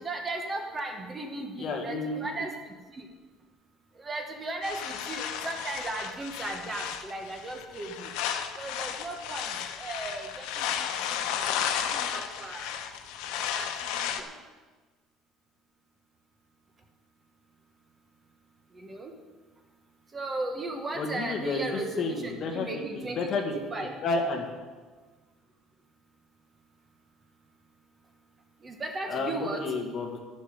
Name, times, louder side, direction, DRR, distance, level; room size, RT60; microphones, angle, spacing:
voice 1, 0.0-3.1 3.9-8.1 8.5-12.7 13.3-14.3 18.7-19.1 20.1-23.4 23.7-23.9 28.6-29.6, right 2 dB, 20° right, 3 dB, 1.1 m, -37 dB
voice 2, 1.6-2.4 21.0-23.5 24.0-24.5 29.1-30.2, left 3 dB, 35° left, 2 dB, 1.8 m, -31 dB
sound 1, 4.6-14.2, left 9 dB, 80° left, 1.0 m, -33 dB
12.5 x 11.5 x 5.2 m, 1.3 s
cardioid pair, 175°, 0 cm